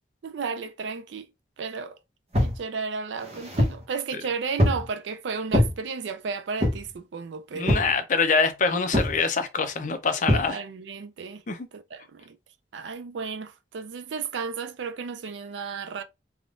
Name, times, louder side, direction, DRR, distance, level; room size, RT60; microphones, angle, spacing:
voice 1, 0.2-1.3 1.6-2.0 2.4-7.9 10.3-11.4 11.7-12.4 12.7-16.0, right 5 dB, 85° right, 0.4 m, -33 dB
sound 1, 2.3-2.6 3.2-3.8 4.6-4.9 5.5-5.8 6.6-6.9 7.7-8.0 8.9-9.2 10.3-10.5, left 1 dB, 35° right, 0.9 m, -23 dB
voice 2, 7.5-10.6 11.5-11.7, left 4 dB, 45° left, 0.5 m, -25 dB
3.4 x 2.4 x 2.5 m
head